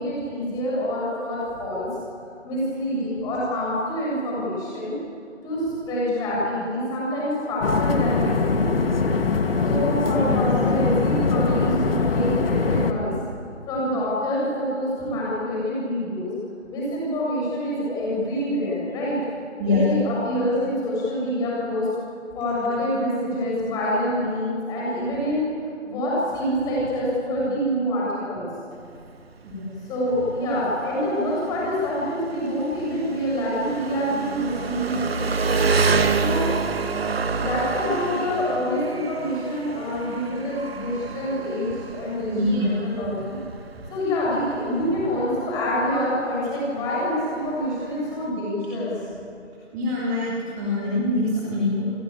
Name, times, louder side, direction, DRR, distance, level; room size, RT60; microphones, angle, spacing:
voice 1, 0.0-1.9 2.4-4.9 5.4-8.7 9.6-13.1 13.7-16.3 16.7-19.2 19.7-21.9 22.3-25.4 25.8-28.5 29.9-35.0 36.1-36.5 37.3-42.5 42.8-43.3 43.9-49.1, equal, 10° left, -6 dB, 6.8 m, -26 dB
sound 1, 7.6-12.9, left 4 dB, 50° left, 1.9 m, -22 dB
voice 2, 10.1-10.4 19.6-19.9 29.4-29.7 38.8-38.9 42.3-42.8 49.7-50.3 50.6-51.8, left 2 dB, 15° right, -7 dB, 3.1 m, -24 dB
Engine, 28.7-48.3, right 4 dB, 50° right, 1.4 m, -29 dB
28.5 x 19.0 x 8.7 m, 2.4 s
figure-of-eight pair, 160°, 37 cm